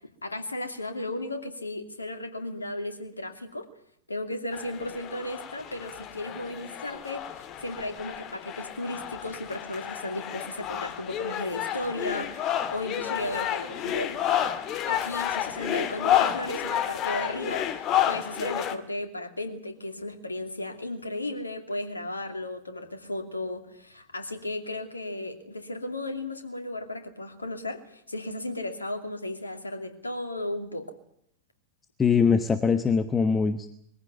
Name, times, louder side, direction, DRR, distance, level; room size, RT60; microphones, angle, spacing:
voice 1, 0.2-3.7 4.1-14.1 14.9-30.9, left 1 dB, 80° left, 7 dB, 2.7 m, -35 dB
sound 1, 4.5-18.8, left 11 dB, 35° left, 1.7 m, -30 dB
voice 2, 32.0-33.7, left 5 dB, 20° left, 11 dB, 1.2 m, -22 dB
22.0 x 15.5 x 9.6 m, 0.70 s
figure-of-eight pair, 90°, 0 cm